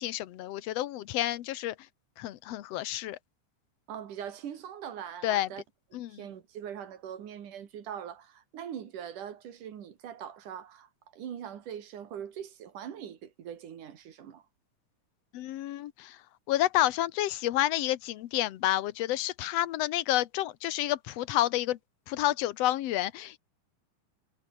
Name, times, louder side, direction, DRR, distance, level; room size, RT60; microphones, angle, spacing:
voice 1, 0.0-1.7 2.2-3.2 5.2-5.5 5.9-6.2 15.3-16.2 16.5-21.8 22.1-23.4, left 14 dB, 70° left, 1.6 m, -29 dB
voice 2, 3.9-5.6 6.1-14.4, right 9 dB, 70° right, 3.6 m, -42 dB
omnidirectional pair, 3.8 m